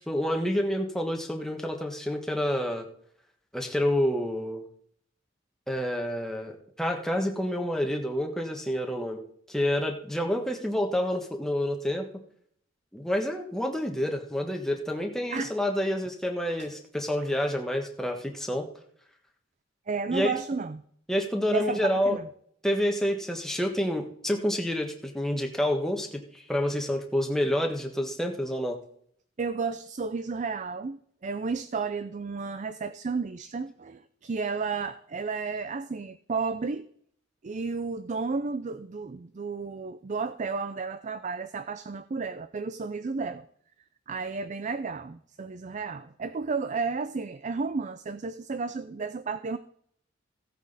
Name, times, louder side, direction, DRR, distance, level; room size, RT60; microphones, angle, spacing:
voice 1, 0.1-2.9 3.5-4.7 5.7-9.2 9.5-12.1 12.9-18.7 20.1-20.3 21.1-22.2 22.6-28.8, equal, 5° left, 2 dB, 1.4 m, -28 dB
voice 2, 19.9-20.8 21.5-22.3 29.4-36.9 37.4-43.4 44.1-49.6, right 4 dB, 40° right, 13 dB, 0.4 m, -32 dB
15.5 x 8.4 x 4.1 m, 0.65 s
head